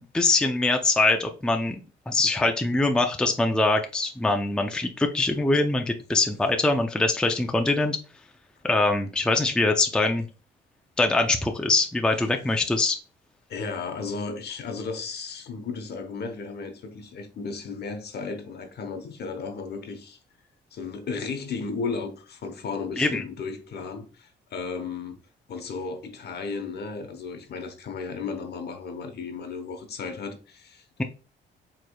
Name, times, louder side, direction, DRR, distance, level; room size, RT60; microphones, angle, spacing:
voice 1, 0.1-1.8 2.1-8.0 8.6-10.3 11.0-13.0 23.0-23.2, left 2 dB, 5° left, 0.4 m, -23 dB
voice 2, 13.5-20.2 20.7-25.2 25.5-31.0, left 4 dB, 55° left, 0.9 m, -34 dB
4.6 x 3.1 x 2.2 m
cardioid pair, 90°, 20 cm